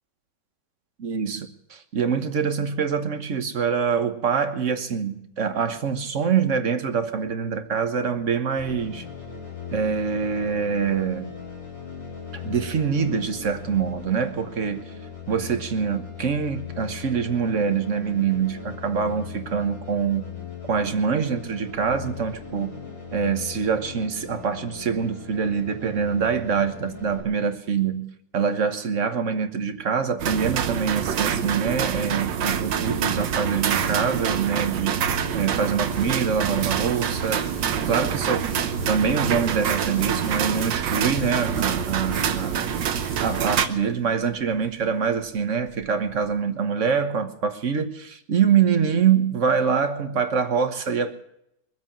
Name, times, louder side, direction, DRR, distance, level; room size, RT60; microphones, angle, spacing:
voice 1, 1.0-9.1 9.7-11.3 12.3-14.9 15.3-20.3 20.7-22.8 23.1-35.0 35.3-37.5 37.8-38.5 38.9-42.6 43.2-51.1, right 6 dB, 45° right, 1.4 m, -25 dB
sound 1, 8.6-27.2, left 6 dB, 85° left, 5.8 m, -39 dB
sound 2, 30.2-43.7, right 8 dB, 85° right, 1.7 m, -26 dB
sound 3, 35.4-46.4, equal, 15° left, 6.3 m, -44 dB
22.0 x 8.1 x 7.3 m
omnidirectional pair, 2.0 m